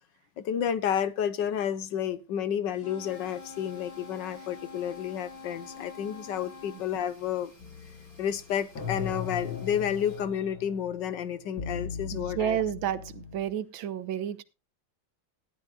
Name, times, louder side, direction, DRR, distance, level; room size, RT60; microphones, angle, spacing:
voice 1, 0.4-7.5 8.2-12.6, left 9 dB, 65° left, 1.6 m, -31 dB
sound 1, 2.7-6.9, left 4 dB, 10° left, 1.8 m, -46 dB
sound 2, 3.0-10.2, left 1 dB, 45° left, 4.6 m, -58 dB
sound 3, 7.6-13.5, left 6 dB, 90° left, 2.9 m, -39 dB
voice 2, 12.1-14.4, right 10 dB, 80° right, 1.7 m, -31 dB
17.0 x 12.0 x 2.4 m
omnidirectional pair, 2.2 m